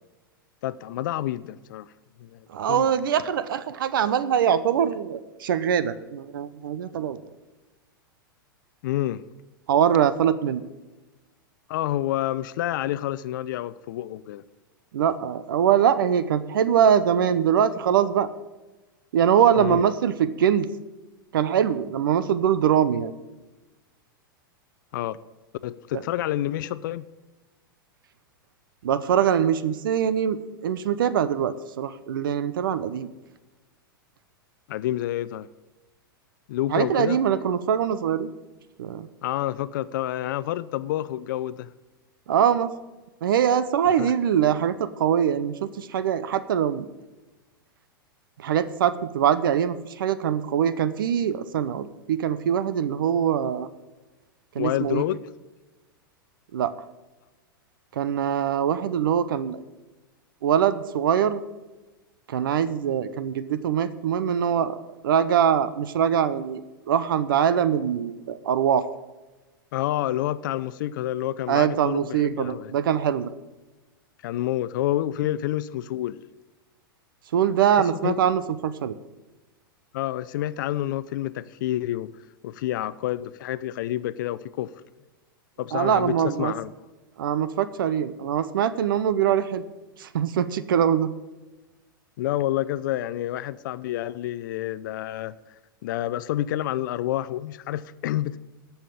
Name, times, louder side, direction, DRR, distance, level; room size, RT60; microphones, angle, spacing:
voice 1, 0.6-1.9 2.2-2.9 8.8-9.2 11.7-14.4 19.6-19.8 24.9-25.2 25.6-27.0 34.7-35.5 36.5-37.2 39.2-41.7 44.0-44.1 54.6-55.3 69.7-72.7 74.2-76.2 78.0-78.2 79.9-82.1 82.4-84.7 85.6-86.7 92.2-95.3 95.8-98.4, left 13 dB, 60° left, 16 dB, 0.5 m, -28 dB
voice 2, 2.5-7.2 9.7-10.6 14.9-18.3 19.1-20.7 21.3-23.1 25.9-26.0 28.8-33.1 36.7-38.3 38.8-39.1 42.3-42.7 43.2-46.9 48.4-53.7 54.5-55.0 56.5-56.8 57.9-59.6 60.4-61.4 62.3-64.8 65.0-66.6 66.9-68.9 71.5-73.3 77.3-78.9 85.7-86.5 87.2-89.6 90.0-91.1, right 9 dB, 70° right, 14 dB, 0.8 m, -23 dB
14.0 x 5.8 x 8.5 m, 1.1 s
hypercardioid pair, 100°, 12 cm